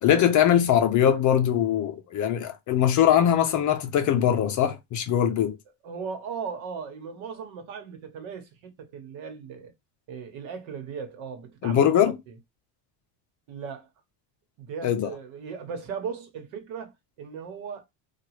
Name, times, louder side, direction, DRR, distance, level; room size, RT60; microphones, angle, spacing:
voice 1, 0.0-5.6 11.6-12.2 14.8-15.1, left 9 dB, 40° left, 0.5 m, -21 dB
voice 2, 5.8-8.5 8.8-9.7 10.1-11.9 12.3-12.4 13.5-13.9 14.6-17.9, right 6 dB, 70° right, 1.2 m, -37 dB
2.9 x 2.4 x 2.9 m
cardioid pair, 150°, 49 cm